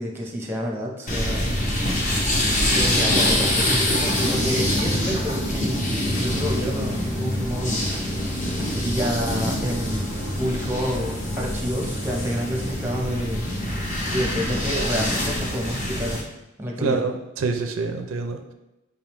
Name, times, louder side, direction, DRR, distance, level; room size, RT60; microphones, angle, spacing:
voice 1, 0.0-1.5 2.7-7.8 8.8-13.4 14.1-16.2 16.6-17.0, equal, 10° right, -1 dB, 0.6 m, -28 dB
sound 1, 1.1-16.2, left 1 dB, 35° left, 0.7 m, -25 dB
voice 2, 16.8-18.5, right 4 dB, 70° right, 6 dB, 0.4 m, -26 dB
5.0 x 3.5 x 2.9 m, 0.96 s
head